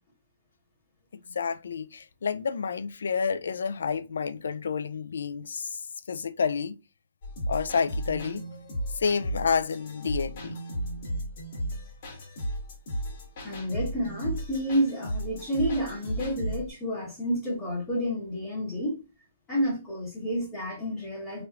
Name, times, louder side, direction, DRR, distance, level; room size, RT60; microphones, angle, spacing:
voice 1, 1.3-5.8 6.1-6.8 7.5-8.4 9.0-10.6, left 6 dB, 90° left, 0.3 m, -29 dB
sound 1, 7.2-16.7, right 1 dB, 50° left, 1.5 m, -34 dB
voice 2, 13.4-19.0 19.5-21.5, equal, 15° left, 1.4 m, -30 dB
3.1 x 3.0 x 2.3 m
hypercardioid pair, 160°, 0 cm